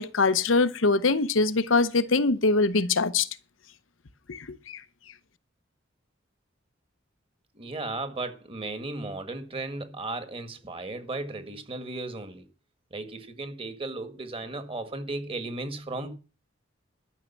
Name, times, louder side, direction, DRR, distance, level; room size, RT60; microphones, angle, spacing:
voice 1, 0.0-3.3 4.3-4.8, left 3 dB, 90° left, 0.8 m, -23 dB
voice 2, 7.5-12.5 12.9-16.1, right 2 dB, 30° right, 1.7 m, -35 dB
12.5 x 6.4 x 7.2 m
head